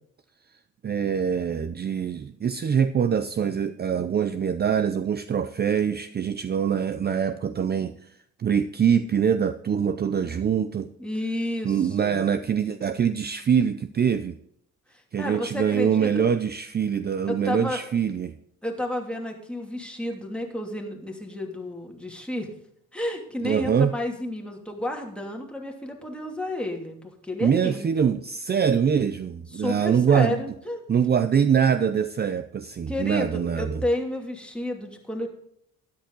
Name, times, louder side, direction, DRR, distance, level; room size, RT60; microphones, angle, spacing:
voice 1, 0.8-8.1 8.4-10.9 11.6-14.4 15.1-18.4 23.4-23.9 27.4-30.4 30.9-33.7, right 7 dB, 35° right, 11 dB, 0.6 m, -24 dB
voice 2, 11.0-12.2 14.9-16.2 17.3-17.8 18.6-22.5 22.9-28.1 29.5-30.8 32.9-35.3, left 1 dB, 5° left, 1 dB, 2.7 m, -31 dB
12.5 x 10.5 x 3.9 m, 0.72 s
cardioid pair, 105°, 30 cm